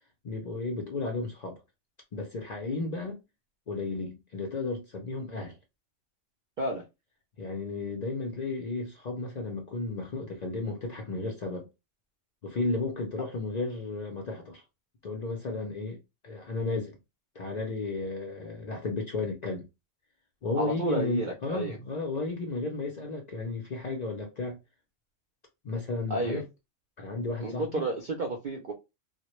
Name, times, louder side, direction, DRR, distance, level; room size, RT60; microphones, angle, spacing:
voice 1, 0.2-1.6 2.1-3.2 3.7-5.6 7.4-11.7 12.4-14.6 15.0-16.0 16.2-17.0 17.4-19.7 20.4-24.6 25.6-26.5 27.0-27.8, left 3 dB, 65° left, 0.4 m, -33 dB
voice 2, 20.5-21.8 26.1-26.4 27.4-28.7, right 2 dB, 65° right, 0.4 m, -31 dB
2.1 x 2.0 x 2.9 m
omnidirectional pair, 1.3 m